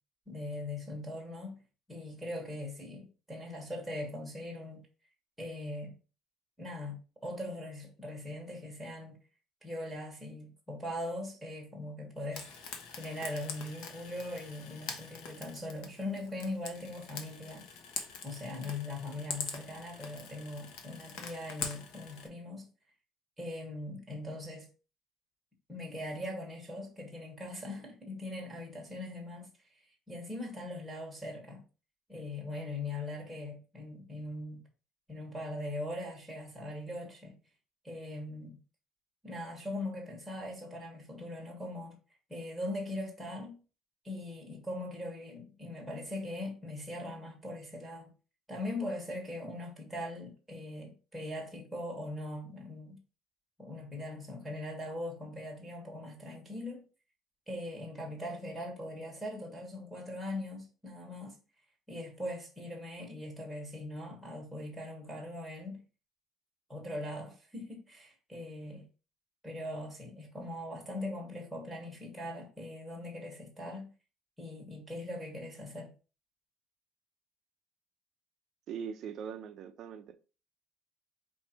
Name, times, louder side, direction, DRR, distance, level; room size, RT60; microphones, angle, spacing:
voice 1, 0.3-1.6 1.9-4.8 5.4-5.9 6.6-9.2 9.6-12.5 12.9-17.7 18.2-22.7 23.4-24.7 25.7-29.8 30.1-31.6 32.1-34.6 35.1-37.4 37.8-38.6 39.2-42.0 42.3-43.6 44.0-48.1 48.5-53.0 53.6-56.8 57.5-61.4 61.9-65.8 66.7-68.9 69.4-73.9 74.4-75.9, left 1 dB, ahead, 1.1 m, -41 dB
Frying (food), 12.3-22.3, left 5 dB, 70° left, 0.9 m, -44 dB
voice 2, 78.7-80.2, right 7 dB, 45° right, 0.4 m, -41 dB
4.6 x 2.6 x 4.3 m
cardioid pair, 175°, 0 cm